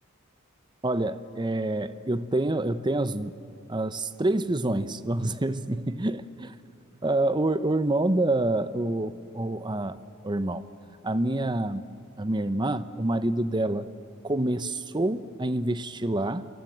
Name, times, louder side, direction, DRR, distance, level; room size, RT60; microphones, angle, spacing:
voice 1, 0.8-3.3 3.7-6.5 7.0-10.0 10.2-10.6 11.0-11.8 12.2-13.9 14.2-16.5, right 2 dB, 20° right, 0.8 m, -27 dB
28.0 x 27.5 x 7.5 m
head